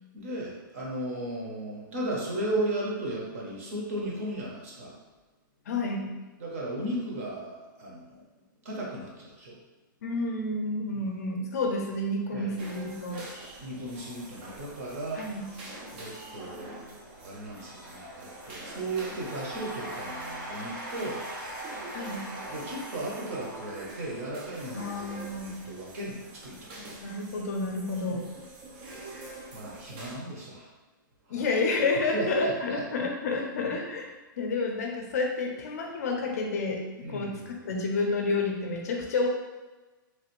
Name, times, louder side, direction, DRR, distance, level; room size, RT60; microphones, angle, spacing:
voice 1, 0.1-5.0 6.4-8.2 8.6-9.6 10.9-11.0 12.3-12.6 13.6-21.3 22.5-26.9 28.1-28.2 28.9-30.7 31.3-31.5 32.1-32.8 37.0-37.4, right 1 dB, 40° right, -3 dB, 0.7 m, -36 dB
voice 2, 5.7-6.1 10.0-13.2 15.2-15.5 21.9-22.2 24.7-25.6 27.0-28.2 31.3-34.1 34.4-37.3 37.7-39.3, left 3 dB, 45° left, 1 dB, 0.5 m, -30 dB
sound 1, 12.6-30.2, right 2 dB, 25° right, 0.3 m, -46 dB
Cheering / Applause / Crowd, 13.5-26.9, right 1 dB, 75° right, 1.2 m, -44 dB
3.0 x 2.4 x 2.9 m, 1.2 s
hypercardioid pair, 175°, 11 cm